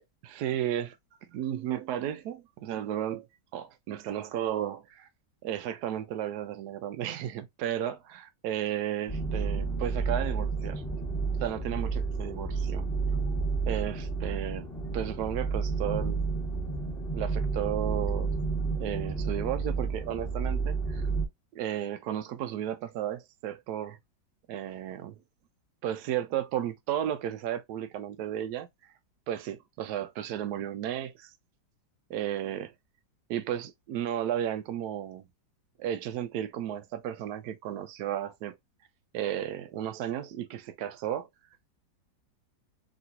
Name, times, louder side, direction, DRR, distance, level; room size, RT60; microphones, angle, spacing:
voice 1, 0.2-1.0 1.3-3.3 3.5-5.1 5.4-8.2 8.4-10.8 11.4-12.9 13.7-14.7 14.9-16.2 17.1-18.3 18.8-21.1 21.5-24.0 24.5-25.2 25.8-28.7 29.3-31.3 32.1-32.7 33.3-35.2 35.8-38.6 39.1-41.3, right 11 dB, 70° right, 1.0 m, -33 dB
sound 1, 9.1-21.3, right 4 dB, 15° left, 1.6 m, -31 dB
3.2 x 3.0 x 2.7 m
omnidirectional pair, 2.0 m